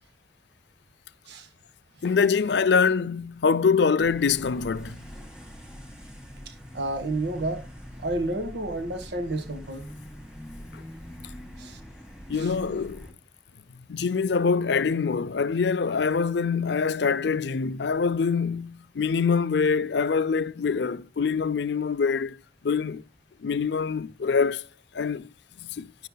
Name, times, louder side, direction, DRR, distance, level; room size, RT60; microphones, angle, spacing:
voice 1, 2.0-5.0 10.7-10.8 12.3-13.1 13.9-22.4 22.6-23.0 23.4-24.6 24.9-25.3 25.6-25.9, left 5 dB, 75° left, 0.5 m, -24 dB
sound 1, 4.0-13.1, equal, 5° right, 1.8 m, -44 dB
voice 2, 6.4-7.7 8.0-9.9 11.6-11.8 12.3-12.5, right 2 dB, 75° right, 1.6 m, -31 dB
12.0 x 10.0 x 2.3 m
head